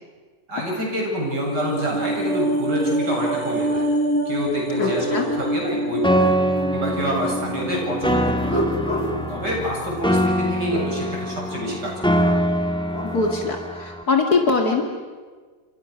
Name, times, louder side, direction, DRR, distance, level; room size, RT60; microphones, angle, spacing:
voice 1, 0.5-3.9 4.2-6.3 6.7-8.6 9.3-12.3, equal, 85° right, -1 dB, 8.2 m, -27 dB
sound 1, 1.2-9.7 10.0-10.1, right 1 dB, 35° right, 3.8 m, -27 dB
sound 2, 3.7-3.9 4.4-6.3 8.2-10.9 12.7-13.5, equal, 40° left, 5.3 m, -30 dB
voice 2, 4.8-5.3 13.0-14.9, left 4 dB, 65° left, 3 dB, 2.7 m, -22 dB
Piano, 6.0-14.0, equal, 5° left, 1.5 m, -24 dB
28.0 x 28.0 x 6.5 m, 1.4 s
omnidirectional pair, 1.8 m